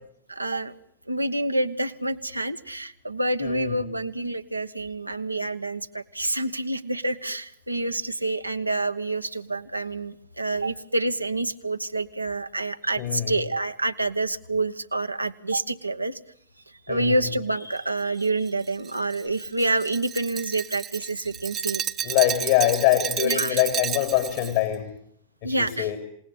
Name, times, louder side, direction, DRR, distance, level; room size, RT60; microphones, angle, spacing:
voice 1, 0.3-0.7 1.1-16.2 16.9-22.1 23.2-23.6 25.4-25.9, right 2 dB, 85° right, 7 dB, 1.3 m, -28 dB
voice 2, 3.4-3.8 13.0-13.4 16.9-17.1 22.0-24.9 25.4-26.0, left 13 dB, 55° left, 8 dB, 3.8 m, -24 dB
Glass, 18.2-24.6, right 10 dB, 30° right, 1.0 m, -32 dB
28.0 x 19.0 x 9.7 m, 0.67 s
figure-of-eight pair, 90°, 0 cm